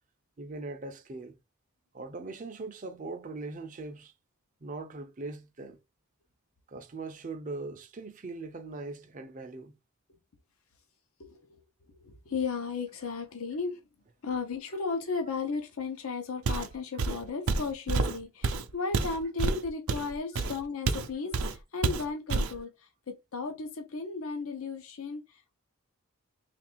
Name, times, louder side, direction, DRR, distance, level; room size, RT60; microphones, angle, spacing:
voice 1, 0.4-1.4 1.9-4.1 4.6-5.8 6.7-9.8, right 3 dB, 35° right, 0.5 m, -40 dB
voice 2, 12.0-13.8 14.2-25.5, left 4 dB, 80° left, 0.7 m, -35 dB
Walk footsteps, 16.4-16.7 17.0-21.1 21.3-21.6 21.8-22.6, right 3 dB, 85° right, 0.5 m, -29 dB
3.2 x 2.5 x 4.4 m
head